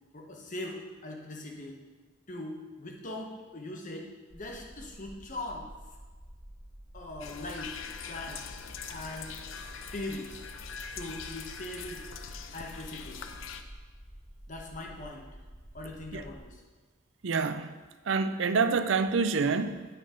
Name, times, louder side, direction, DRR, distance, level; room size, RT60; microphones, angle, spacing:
voice 1, 0.1-1.8 2.3-5.7 6.9-8.5 8.9-9.3 9.9-10.4 10.9-12.0 12.5-13.2 14.5-15.3 15.7-16.6, left 1 dB, 40° left, 1 dB, 1.2 m, -41 dB
sound 1, 4.3-16.4, equal, 10° right, 1.5 m, -50 dB
Suikinkutsu at Eikan-do Zenrin-ji, 7.2-13.6, left 6 dB, 85° left, 0.6 m, -43 dB
voice 2, 17.2-17.7 18.1-19.9, right 4 dB, 70° right, 10 dB, 0.5 m, -27 dB
8.9 x 5.3 x 5.2 m, 1.3 s
head